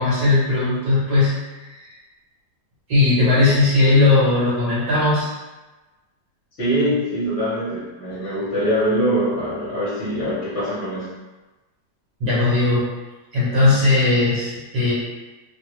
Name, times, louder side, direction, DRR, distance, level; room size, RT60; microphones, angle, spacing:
voice 1, 0.0-1.3 1.7-1.9 2.9-5.3 8.2-8.3 12.2-12.8 13.3-14.9, left 2 dB, 65° right, -8 dB, 1.5 m, -18 dB
voice 2, 6.6-11.1, equal, 45° left, -10 dB, 1.0 m, -23 dB
2.9 x 2.5 x 3.0 m, 1.2 s
omnidirectional pair, 1.9 m